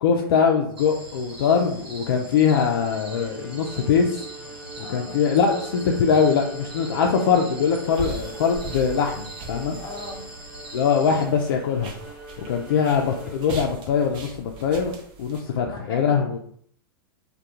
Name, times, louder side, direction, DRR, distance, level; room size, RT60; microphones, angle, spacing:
voice 1, 0.0-4.2 4.8-9.8 10.7-11.9 12.4-14.9 15.2-16.4, left 6 dB, 60° left, 1 dB, 0.4 m, -22 dB
sound 1, 0.8-11.2, right 2 dB, 80° right, 1.0 m, -42 dB
Bowed string instrument, 2.7-13.7, right 3 dB, 10° right, 0.9 m, -42 dB
voice 2, 4.7-5.2 9.8-10.3 15.6-16.4, left 4 dB, 35° left, -1 dB, 1.1 m, -38 dB
sound 2, 7.9-15.4, right 4 dB, 40° right, 0.6 m, -40 dB
2.3 x 2.1 x 2.8 m, 0.63 s
hypercardioid pair, 100°, 12 cm